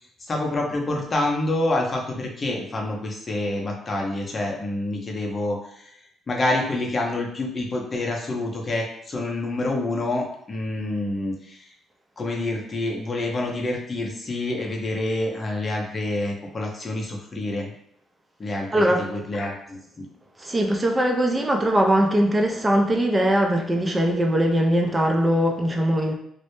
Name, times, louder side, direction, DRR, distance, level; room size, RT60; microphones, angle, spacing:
voice 1, 0.2-11.7 12.2-17.7 18.4-20.1, left 2 dB, 35° left, 0 dB, 0.6 m, -27 dB
voice 2, 18.7-19.0 20.4-26.1, right 1 dB, 20° right, 2 dB, 0.4 m, -21 dB
2.1 x 2.0 x 2.9 m, 0.70 s
cardioid pair, 80°, 0 cm